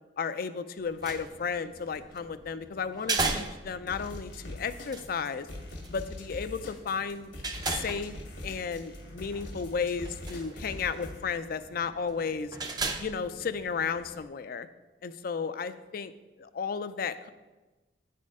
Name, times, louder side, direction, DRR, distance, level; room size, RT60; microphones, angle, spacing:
voice 1, 0.2-5.5 5.9-7.3 7.7-8.1 8.4-12.6 13.0-14.7 15.0-16.1 16.4-17.3, left 6 dB, 50° left, 12 dB, 0.4 m, -33 dB
sound 1, 0.8-14.3, right 3 dB, 20° right, 0.5 m, -38 dB
sound 2, 3.9-11.2, left 1 dB, 75° left, 1.3 m, -43 dB
9.0 x 4.3 x 4.8 m, 1.2 s
head